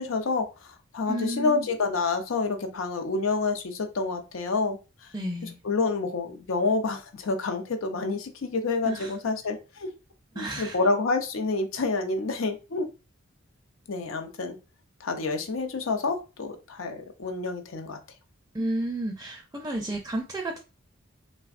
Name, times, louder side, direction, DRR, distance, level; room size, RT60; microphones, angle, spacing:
voice 1, 0.0-5.1 5.6-9.9 10.4-12.9 13.9-14.6 15.0-18.0, left 3 dB, 75° left, 0.5 m, -28 dB
voice 2, 1.1-1.7 5.1-5.6 8.8-9.1 10.4-10.8 18.5-20.6, right 1 dB, 15° right, 0.4 m, -32 dB
3.4 x 2.1 x 2.4 m
head